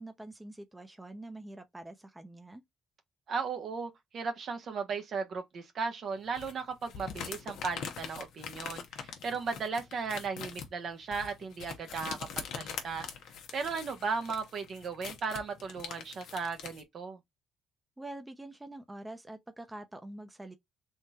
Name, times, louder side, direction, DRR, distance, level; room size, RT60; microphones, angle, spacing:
voice 1, 0.0-2.6 18.0-20.5, right 1 dB, 10° right, 0.7 m, -45 dB
voice 2, 3.3-13.1 13.5-17.2, right 5 dB, 60° right, 0.9 m, -36 dB
sound 1, 6.3-16.8, left 7 dB, 80° left, 0.9 m, -43 dB
3.7 x 2.3 x 4.2 m
cardioid pair, 90°, 0 cm